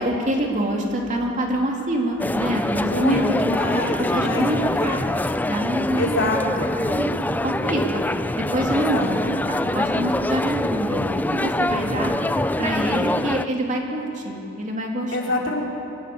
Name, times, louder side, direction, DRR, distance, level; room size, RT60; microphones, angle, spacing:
voice 1, 0.0-3.3 4.0-5.2 5.4-6.3 6.6-8.0 8.4-11.0 11.3-12.1 12.6-15.4, right 1 dB, 35° right, 0 dB, 2.7 m, -26 dB
sound 1, 2.2-13.4, left 1 dB, 10° left, 0.4 m, -24 dB
voice 2, 2.9-4.5 4.8-5.0 6.0-6.7 8.7-9.4 11.7-12.4 15.1-15.6, left 1 dB, 65° left, -1 dB, 3.4 m, -26 dB
22.5 x 16.5 x 8.5 m, 2.9 s
head